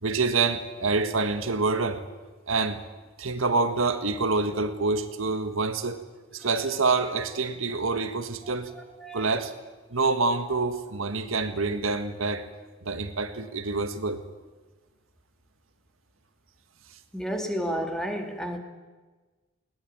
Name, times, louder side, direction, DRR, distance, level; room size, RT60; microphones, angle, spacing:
voice 1, 0.0-2.0 2.5-2.8 3.2-6.0 6.3-8.7 9.1-9.5 9.9-12.5 12.8-14.2, right 3 dB, 85° right, 8 dB, 1.8 m, -26 dB
voice 2, 17.1-18.6, equal, 5° left, 4 dB, 2.4 m, -31 dB
21.0 x 19.5 x 8.8 m, 1.3 s
head